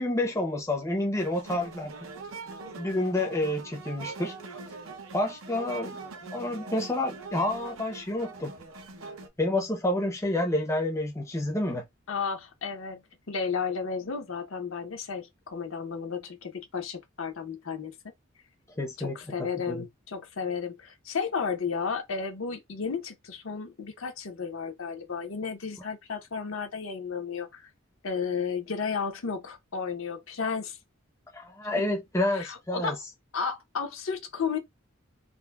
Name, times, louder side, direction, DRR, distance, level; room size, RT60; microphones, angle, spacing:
voice 1, 0.0-1.9 2.8-4.3 5.1-6.0 6.3-8.5 9.4-11.8 18.8-19.8 31.3-32.9, left 1 dB, 15° left, 0.6 m, -29 dB
sound 1, 1.1-9.3, right 4 dB, 75° right, 0.6 m, -42 dB
voice 2, 12.1-17.9 19.0-27.6 28.0-30.8 32.3-33.0 33.3-34.6, left 5 dB, 70° left, 0.7 m, -33 dB
3.7 x 2.0 x 2.2 m
head